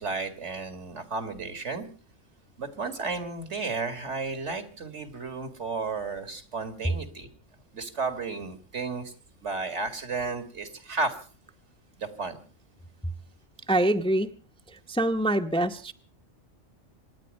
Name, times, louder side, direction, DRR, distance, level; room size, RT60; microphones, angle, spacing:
voice 1, 0.0-1.9 2.6-7.3 7.7-9.1 9.4-11.2 12.0-12.4, right 4 dB, 70° right, 10 dB, 2.4 m, -33 dB
voice 2, 13.7-14.3 14.7-15.9, right 1 dB, 5° left, 6 dB, 0.8 m, -25 dB
26.5 x 9.9 x 5.4 m, 0.42 s
omnidirectional pair, 1.2 m